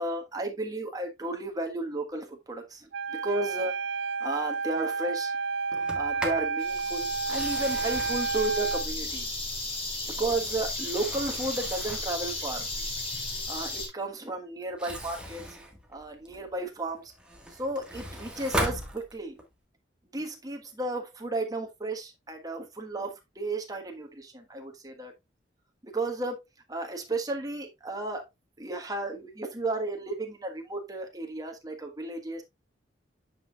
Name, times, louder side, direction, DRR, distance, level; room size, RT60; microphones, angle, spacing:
voice 1, 0.0-2.9 3.2-3.7 4.2-5.3 5.9-9.3 10.2-12.7 13.5-15.4 15.9-17.1 17.6-19.4 20.1-25.1 25.8-26.4 26.7-28.2 28.6-32.4, right 2 dB, 20° right, 1.4 m, -33 dB
Wind instrument woodwind instrument, 2.9-8.9, right 4 dB, 70° right, 0.4 m, -31 dB
Sliding door, 5.7-6.5 7.2-9.5 10.1-12.2 14.6-16.5 17.0-19.5, equal, 5° right, 1.6 m, -38 dB
sound 1, 6.6-13.9, left 2 dB, 35° left, 2.8 m, -34 dB
9.1 x 5.5 x 2.4 m
head